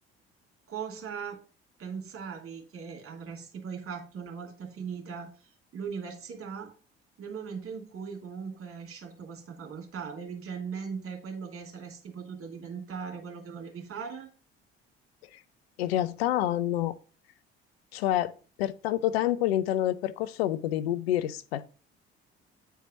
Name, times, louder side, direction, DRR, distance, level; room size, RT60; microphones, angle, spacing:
voice 1, 0.7-1.4 1.8-6.7 7.2-14.3, right 6 dB, 50° right, 2.6 m, -39 dB
voice 2, 15.8-17.0 17.9-18.3 18.6-21.7, left 12 dB, 85° left, 0.6 m, -28 dB
9.0 x 4.6 x 5.2 m
hypercardioid pair, 55°, 30 cm